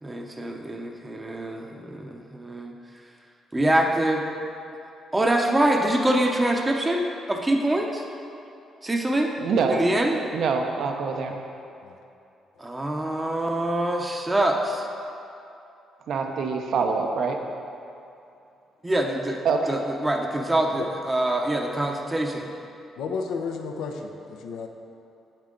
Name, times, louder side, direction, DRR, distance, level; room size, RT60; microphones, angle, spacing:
voice 1, 0.0-2.7 3.5-4.2 5.1-8.0 8.8-9.3 9.7-10.2 12.6-14.9 18.8-19.4 19.7-22.5, right 1 dB, 15° right, 1 dB, 0.7 m, -25 dB
voice 2, 9.4-9.8 10.3-11.4 16.1-17.4 19.4-19.8, right 5 dB, 70° right, 3 dB, 0.8 m, -25 dB
voice 3, 23.0-24.7, left 5 dB, 85° left, 4 dB, 0.6 m, -32 dB
7.8 x 7.4 x 3.8 m, 2.7 s
cardioid pair, 90°, 0 cm